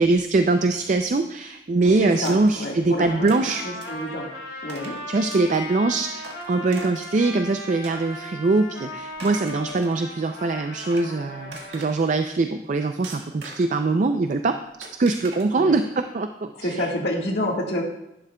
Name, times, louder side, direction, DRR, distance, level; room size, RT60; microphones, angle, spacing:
voice 1, 0.0-3.6 5.1-14.6 15.0-16.9, right 3 dB, 45° right, 8 dB, 0.4 m, -22 dB
voice 2, 1.9-4.3 4.6-5.0 15.5-15.8 16.5-17.8, left 1 dB, 65° left, 0 dB, 1.6 m, -29 dB
sound 1, 2.2-2.7 3.3-3.4 3.8-4.1 4.7-5.0 5.3-5.7 6.2-7.3 7.8-8.5 9.0-10.1 10.6-11.1 11.5-12.2 13.0-13.8 14.8-15.4, right 3 dB, 75° right, 1.6 m, -41 dB
Trumpet, 2.9-11.9, left 1 dB, 80° left, 3.4 m, -37 dB
11.0 x 11.0 x 2.2 m, 0.87 s
head